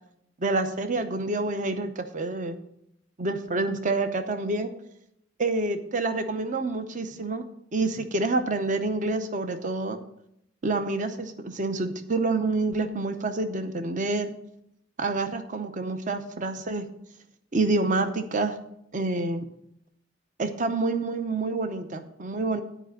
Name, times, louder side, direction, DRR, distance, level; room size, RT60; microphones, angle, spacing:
voice 1, 0.4-2.6 3.2-4.7 5.4-7.4 7.7-10.0 10.6-14.3 15.0-16.8 17.5-18.6 18.9-19.5 20.4-22.6, right 3 dB, 40° right, 8 dB, 0.7 m, -27 dB
10.0 x 5.0 x 7.9 m, 0.76 s
head